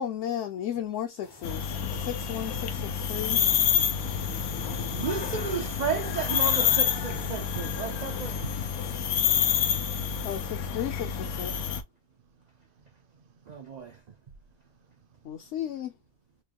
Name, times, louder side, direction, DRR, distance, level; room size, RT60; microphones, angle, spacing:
voice 1, 0.0-3.4 10.2-11.8 15.2-15.9, left 10 dB, 65° left, 0.8 m, -34 dB
sound 1, 1.2-9.2, left 4 dB, 35° left, 0.4 m, -45 dB
sound 2, 1.4-11.8, left 8 dB, 85° left, 1.1 m, -28 dB
voice 2, 4.9-8.4 13.5-14.0, right 6 dB, 85° right, 0.3 m, -33 dB
voice 3, 12.2-14.0 14.6-15.5, right 5 dB, 55° right, 0.7 m, -64 dB
4.5 x 2.2 x 2.9 m
omnidirectional pair, 1.5 m